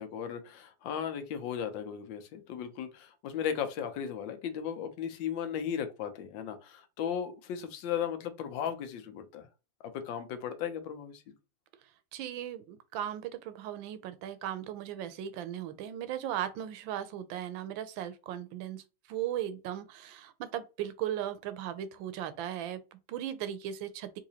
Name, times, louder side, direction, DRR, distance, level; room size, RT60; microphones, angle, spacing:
voice 1, 0.0-9.5 9.9-11.2, left 8 dB, 75° left, 1.3 m, -36 dB
voice 2, 12.1-18.8 19.1-24.2, right 11 dB, 80° right, 1.3 m, -37 dB
3.9 x 2.8 x 2.7 m
omnidirectional pair, 2.1 m